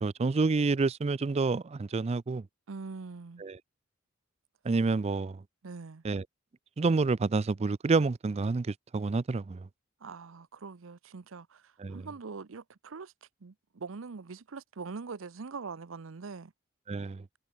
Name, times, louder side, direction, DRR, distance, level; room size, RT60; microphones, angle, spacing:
voice 1, 0.0-2.4 3.4-3.6 4.7-5.4 6.0-6.2 6.8-9.6 11.8-12.0 16.9-17.2, right 3 dB, 30° right, 0.4 m, -28 dB
voice 2, 2.7-3.4 5.6-6.0 10.0-16.5, right 4 dB, 80° right, 0.7 m, -43 dB
head